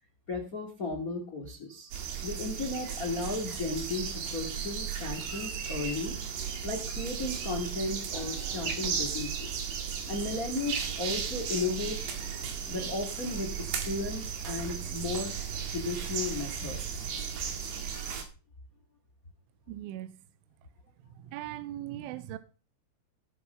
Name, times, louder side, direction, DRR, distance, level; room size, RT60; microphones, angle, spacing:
voice 1, 0.3-1.9 2.2-6.1 6.6-9.6 10.1-12.0 12.7-15.3 15.7-17.1, left 3 dB, 45° left, 1.1 m, -35 dB
sound 1, 1.9-18.2, right 7 dB, 60° right, 3.9 m, -35 dB
sound 2, 8.1-14.6, right 4 dB, 45° right, 1.9 m, -46 dB
voice 2, 19.7-20.2 21.2-22.4, right 13 dB, 80° right, 3.3 m, -39 dB
18.0 x 7.1 x 5.7 m
omnidirectional pair, 5.7 m